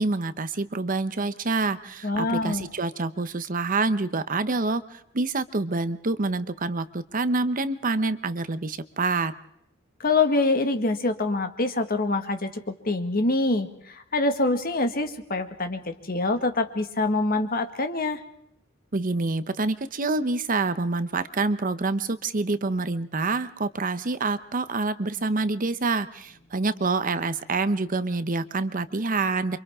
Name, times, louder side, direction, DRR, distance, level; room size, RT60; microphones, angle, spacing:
voice 1, 0.0-9.3 18.9-29.6, right 3 dB, 40° right, 12 dB, 0.9 m, -27 dB
voice 2, 2.0-2.7 10.0-18.2, left 2 dB, 45° left, 7 dB, 1.8 m, -25 dB
28.5 x 25.0 x 3.7 m, 0.75 s
head